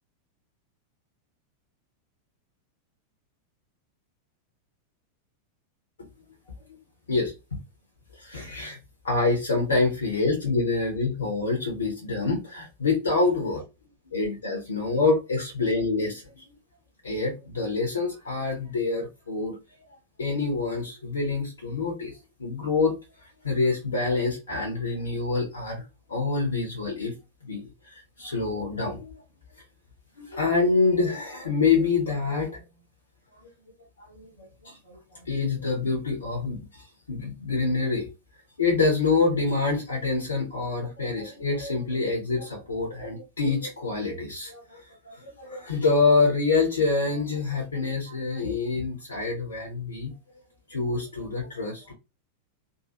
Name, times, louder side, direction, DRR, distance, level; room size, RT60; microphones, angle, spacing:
voice 1, 7.1-7.6 8.1-8.8 9.0-13.6 14.1-16.4 17.0-19.6 19.9-23.0 23.4-25.8 26.1-27.1 27.4-29.2 30.2-32.6 34.0-38.1 38.6-50.1 50.7-51.9, left 3 dB, 70° left, 1.0 m, -26 dB
3.7 x 2.6 x 2.9 m
figure-of-eight pair, 90°, 0 cm